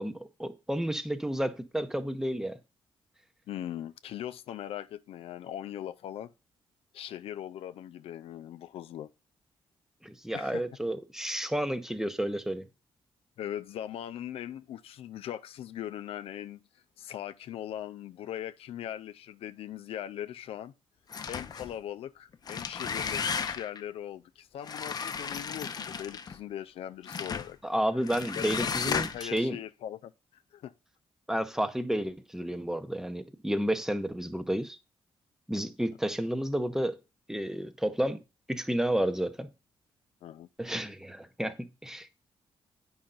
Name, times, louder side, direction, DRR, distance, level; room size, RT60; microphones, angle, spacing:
voice 1, 0.0-2.6 10.0-12.7 27.6-29.6 31.3-34.8 35.5-37.0 37.3-38.2 38.5-39.5 40.6-42.1, right 1 dB, 5° right, 0.8 m, -31 dB
voice 2, 3.5-6.3 6.9-9.1 10.3-10.6 13.4-16.6 17.0-20.7 21.3-27.7 28.3-30.7 40.2-40.5, left 11 dB, 80° left, 0.4 m, -40 dB
sound 1, 21.1-21.7 22.3-23.8 24.6-26.4 27.1-27.5 28.1-29.4, left 6 dB, 40° left, 0.6 m, -34 dB
8.6 x 5.6 x 3.9 m
cardioid pair, 90°, 10 cm